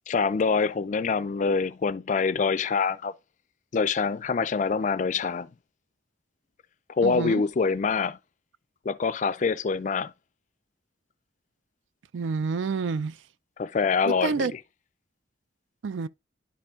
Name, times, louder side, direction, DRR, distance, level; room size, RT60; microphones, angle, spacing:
voice 1, 0.1-3.1 3.7-5.5 6.9-8.2 8.8-10.1 13.6-14.6, left 5 dB, 40° left, 0.4 m, -25 dB
voice 2, 7.0-7.4 12.1-13.2 14.1-14.5 15.8-16.1, right 4 dB, 85° right, 0.4 m, -28 dB
10.5 x 4.4 x 2.4 m
head